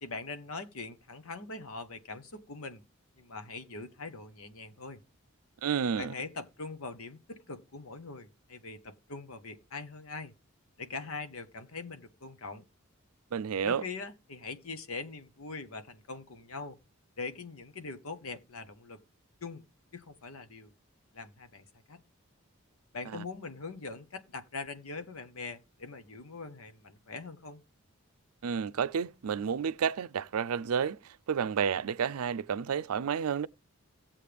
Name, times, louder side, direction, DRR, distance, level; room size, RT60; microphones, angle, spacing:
voice 1, 0.0-2.8 3.2-5.0 6.0-10.3 10.8-12.6 13.6-16.8 17.2-19.0 19.4-19.6 19.9-20.7 21.1-22.0 22.9-27.6, left 4 dB, 75° left, 1.1 m, -42 dB
voice 2, 5.6-6.1 13.3-13.8 23.1-23.2 28.4-33.5, right 7 dB, 85° right, 0.4 m, -31 dB
16.0 x 7.4 x 3.4 m
head